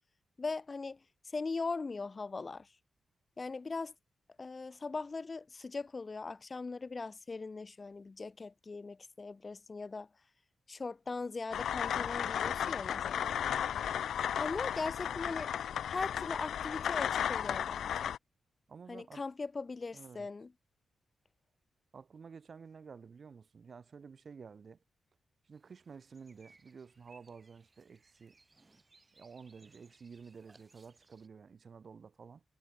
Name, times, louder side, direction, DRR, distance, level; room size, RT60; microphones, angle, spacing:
voice 1, 0.4-2.7 3.4-3.9 4.4-10.1 10.7-13.3 14.4-15.5 15.9-18.2 18.9-20.5, left 4 dB, 35° left, 2.7 m, -40 dB
sound 1, 11.5-18.2, left 9 dB, 85° left, 0.4 m, -34 dB
voice 2, 18.7-19.2 19.9-20.3 21.9-24.8 25.4-28.4 29.1-32.4, right 5 dB, 50° right, 4.2 m, -52 dB
sound 2, 25.5-31.3, right 3 dB, 30° right, 6.1 m, -65 dB
cardioid pair, 95°, 0 cm